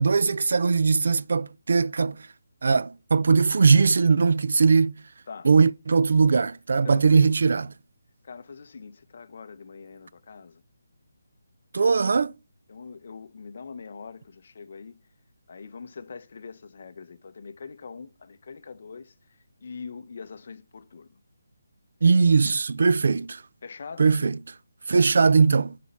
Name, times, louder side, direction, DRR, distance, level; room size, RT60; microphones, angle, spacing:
voice 1, 0.0-2.2 2.6-5.0 5.4-7.7 11.7-12.3 22.0-23.4 24.0-24.4 24.9-25.7, right 4 dB, 55° right, 0.4 m, -20 dB
voice 2, 6.8-7.4 8.2-10.6 12.7-15.0 15.5-21.2 23.6-24.2, left 5 dB, 40° left, 0.8 m, -43 dB
11.0 x 4.2 x 5.7 m
hypercardioid pair, 175°, 0 cm